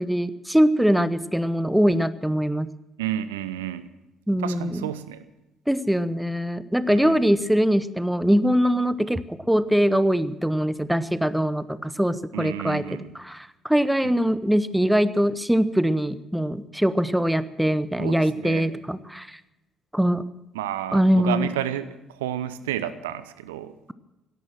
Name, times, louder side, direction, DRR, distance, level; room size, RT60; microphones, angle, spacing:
voice 1, 0.0-2.7 4.3-4.8 5.7-19.4 19.9-20.2 20.9-21.5, equal, 5° right, 15 dB, 0.9 m, -22 dB
voice 2, 3.0-3.9 4.4-5.2 6.9-7.3 12.3-13.1 14.0-14.2 18.0-18.7 20.5-23.7, right 11 dB, 75° right, 14 dB, 0.7 m, -31 dB
17.5 x 13.5 x 6.1 m, 0.95 s
figure-of-eight pair, 45°, 0 cm